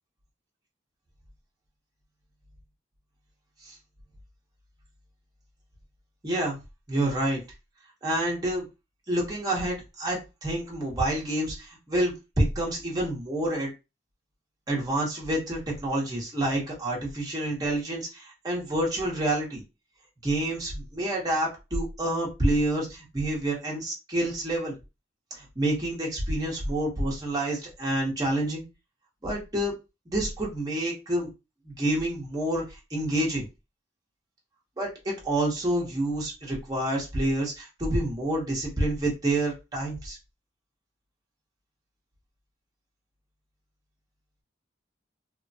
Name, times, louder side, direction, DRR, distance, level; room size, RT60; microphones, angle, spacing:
voice 1, 6.2-6.6 6.9-7.4 8.0-8.6 9.1-13.7 14.7-19.6 20.2-24.8 25.3-28.6 29.2-29.7 30.1-31.3 31.6-33.5 34.8-40.2, right 1 dB, 20° right, -3 dB, 0.9 m, -28 dB
3.0 x 2.0 x 2.7 m, 0.26 s
head